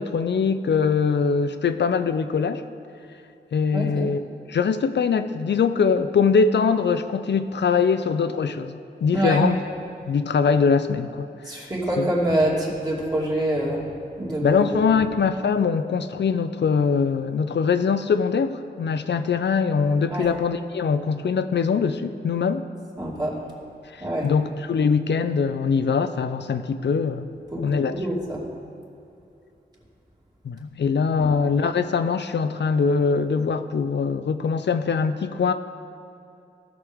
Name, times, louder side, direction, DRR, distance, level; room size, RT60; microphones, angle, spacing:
voice 1, 0.0-2.6 3.5-4.2 4.5-9.6 10.0-11.3 11.5-11.6 12.0-12.1 14.4-22.7 23.9-27.3 27.6-28.0 30.4-35.5, left 5 dB, 75° left, 10 dB, 0.5 m, -22 dB
voice 2, 3.7-4.1 9.1-9.5 11.5-13.9 14.2-15.0 20.1-20.3 23.0-23.4 24.0-24.3 27.5-27.6 27.9-28.4 31.2-31.3, right 1 dB, 20° right, -5 dB, 2.4 m, -25 dB
17.0 x 6.6 x 3.5 m, 2.6 s
wide cardioid pair, 110°, 18 cm